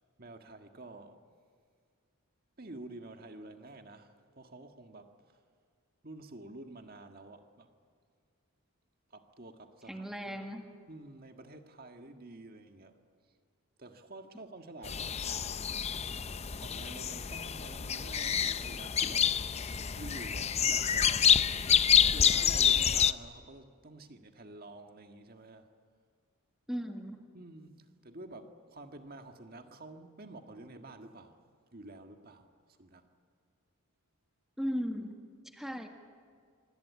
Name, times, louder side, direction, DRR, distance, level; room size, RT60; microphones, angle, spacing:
voice 1, 0.2-1.2 2.6-5.1 6.0-7.7 9.1-10.6 10.9-13.0 13.8-15.5 16.6-19.3 19.6-21.5 22.0-25.7 27.3-31.4 31.7-33.1, right 2 dB, 45° right, 1.7 m, -49 dB
voice 2, 9.9-10.7 26.7-27.2 34.6-35.9, equal, ahead, 1.8 m, -37 dB
sound 1, 14.8-23.1, left 8 dB, 30° left, 0.6 m, -28 dB
25.0 x 24.5 x 8.4 m
head